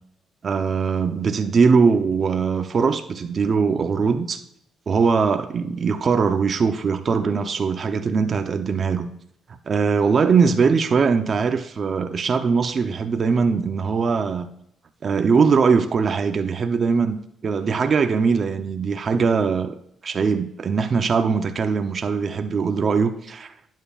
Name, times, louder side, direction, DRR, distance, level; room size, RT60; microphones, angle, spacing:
voice 1, 0.4-4.4 4.9-9.1 9.7-14.5 15.0-17.2 17.4-19.7 20.0-23.5, right 5 dB, 45° right, 7 dB, 0.7 m, -21 dB
12.0 x 9.2 x 2.4 m, 0.76 s
cardioid pair, 90°, 0 cm